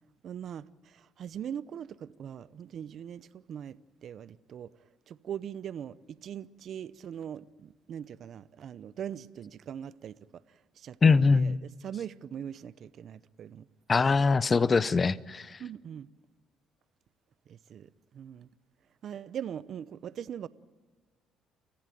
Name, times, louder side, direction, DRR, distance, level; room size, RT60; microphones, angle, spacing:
voice 1, 0.2-4.7 5.1-6.0 6.2-10.2 10.8-13.7 15.6-16.1 17.5-18.5 19.0-20.5, right 9 dB, 60° right, 0.8 m, -41 dB
voice 2, 11.0-11.6 13.9-15.6, left 4 dB, 35° left, 0.7 m, -23 dB
29.5 x 15.0 x 9.2 m
cardioid pair, 85°, 0 cm